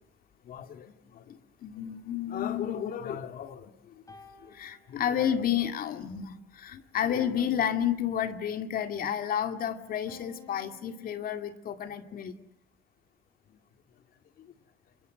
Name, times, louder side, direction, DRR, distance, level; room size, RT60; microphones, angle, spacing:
voice 1, 0.4-4.0 4.4-12.4 14.4-14.5, left 9 dB, 60° left, 8 dB, 2.3 m, -31 dB
sound 1, 1.7-3.5 4.1-5.5 7.1-8.5 10.1-11.5, left 4 dB, 20° left, 4.3 m, -56 dB
29.0 x 22.5 x 7.9 m, 0.77 s
cardioid pair, 110°, 17 cm